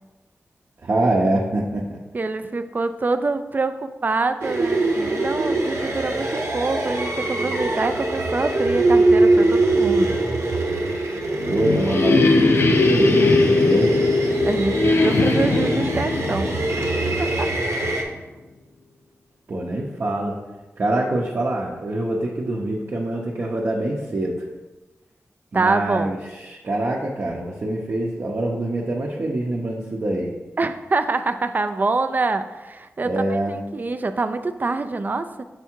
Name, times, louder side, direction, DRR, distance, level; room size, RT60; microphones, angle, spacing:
voice 1, 0.8-2.0 11.5-14.0 19.5-20.4 20.8-24.4 25.5-30.3 33.0-33.6, right 1 dB, 55° right, -4 dB, 0.8 m, -24 dB
voice 2, 2.1-10.1 14.4-17.5 25.5-26.1 30.6-35.4, right 3 dB, 40° right, 10 dB, 0.4 m, -25 dB
sound 1, 4.4-18.0, right 2 dB, 85° right, 0.9 m, -23 dB
sound 2, 11.0-17.7, left 3 dB, 55° left, 0.5 m, -20 dB
6.7 x 3.6 x 4.4 m, 1.1 s
wide cardioid pair, 105°, 5 cm